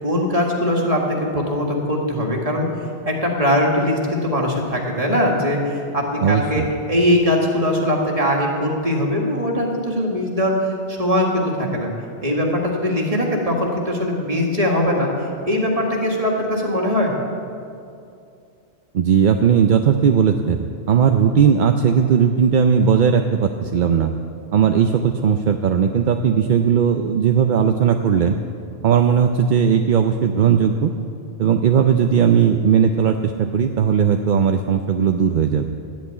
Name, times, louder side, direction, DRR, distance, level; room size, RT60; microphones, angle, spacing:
voice 1, 0.0-2.7 3.1-11.9 12.2-17.1, left 1 dB, 35° right, -1 dB, 2.0 m, -21 dB
voice 2, 6.2-6.7 18.9-24.1 24.5-28.4 28.8-30.9 31.4-35.7, right 7 dB, 55° right, 6 dB, 0.6 m, -17 dB
12.0 x 8.6 x 9.2 m, 2.5 s
omnidirectional pair, 1.1 m